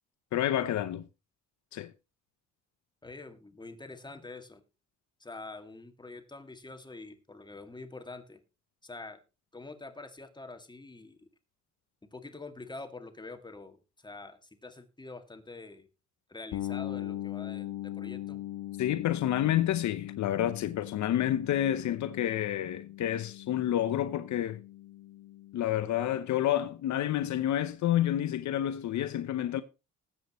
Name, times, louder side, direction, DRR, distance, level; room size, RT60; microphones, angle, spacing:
voice 1, 0.3-1.1 1.7-1.9 18.8-24.6 25.5-29.6, left 12 dB, 70° left, 0.8 m, -29 dB
voice 2, 3.0-4.6 5.2-8.4 8.8-9.2 9.5-11.3 12.1-15.9 16.3-18.4, left 3 dB, 15° left, 2.1 m, -46 dB
sound 1, 16.5-26.2, left 14 dB, 85° left, 1.2 m, -41 dB
20.0 x 8.1 x 3.1 m
cardioid pair, 90°, 30 cm